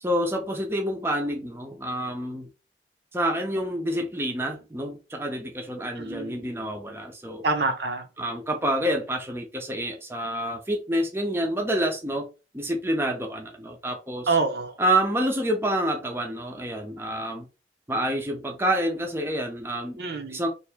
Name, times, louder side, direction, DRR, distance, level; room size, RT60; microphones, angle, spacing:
voice 1, 0.0-2.5 3.1-7.4 8.2-12.3 12.5-14.3 14.8-17.5 17.9-20.0 20.3-20.5, right 1 dB, 15° right, 0.5 m, -28 dB
voice 2, 6.0-6.5 7.4-8.1 14.3-14.8 20.0-20.4, right 3 dB, 60° right, 0.7 m, -27 dB
2.8 x 2.6 x 3.4 m
head